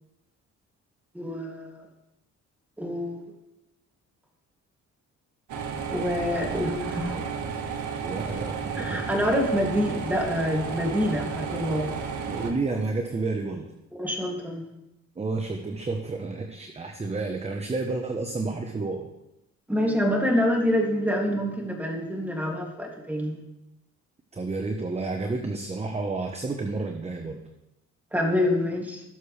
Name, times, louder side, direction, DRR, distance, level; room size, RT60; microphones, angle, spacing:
voice 1, 1.1-1.8 2.8-3.2 5.9-7.3 8.8-11.9 13.9-14.6 19.7-23.4 28.1-29.0, left 1 dB, 5° right, 0 dB, 2.5 m, -26 dB
sound 1, 5.5-12.5, right 6 dB, 80° right, 1.8 m, -32 dB
voice 2, 8.0-9.0 12.3-13.7 15.1-19.1 24.3-27.4, right 3 dB, 20° right, 4 dB, 1.0 m, -30 dB
18.0 x 6.6 x 3.3 m, 0.90 s
cardioid pair, 90°, 30 cm